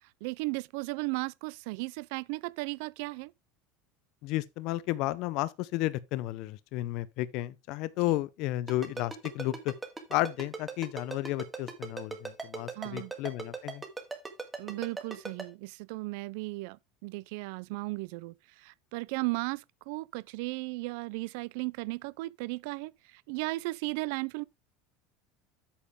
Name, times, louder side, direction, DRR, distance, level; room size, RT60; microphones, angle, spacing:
voice 1, 0.0-3.3 12.8-13.1 14.6-24.4, right 24 dB, 70° right, 0.4 m, -36 dB
voice 2, 4.2-9.7 10.1-13.8, left 16 dB, 55° left, 0.6 m, -32 dB
Ringtone, 8.7-15.4, right 4 dB, 10° right, 1.9 m, -38 dB
8.5 x 7.2 x 3.6 m
supercardioid pair, 150°, 0 cm